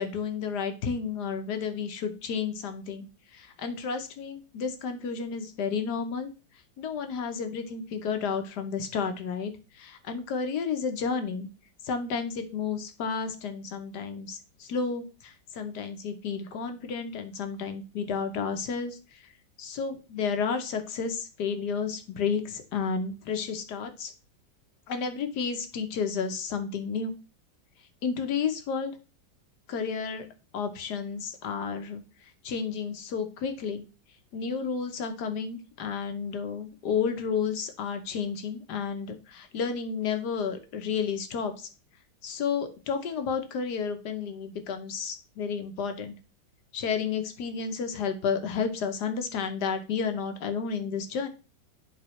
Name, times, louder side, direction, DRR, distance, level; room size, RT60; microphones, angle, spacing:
voice 1, 0.0-3.1 3.3-6.3 6.8-9.5 9.8-11.5 11.8-19.0 19.6-24.1 24.9-27.1 28.0-28.9 29.7-30.2 30.5-32.0 32.4-33.8 34.3-41.5 42.2-46.1 46.7-51.3, left 6 dB, 65° left, 7 dB, 1.4 m, -31 dB
10.5 x 3.9 x 3.1 m, 0.33 s
omnidirectional pair, 2.1 m